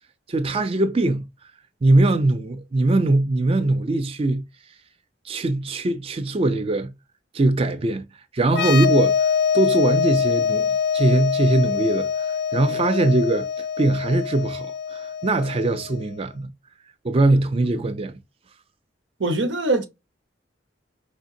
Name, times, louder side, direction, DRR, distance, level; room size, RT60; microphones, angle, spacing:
voice 1, 0.3-1.2 1.8-4.4 5.3-6.9 7.3-8.0 8.3-9.1 9.5-13.5 13.8-16.5 17.0-18.2, right 2 dB, 30° right, 0.4 m, -21 dB
sound 1, 8.5-16.0, left 7 dB, 65° left, 0.5 m, -24 dB
voice 2, 19.2-19.9, right 2 dB, 80° right, 0.9 m, -23 dB
5.0 x 3.5 x 2.7 m
head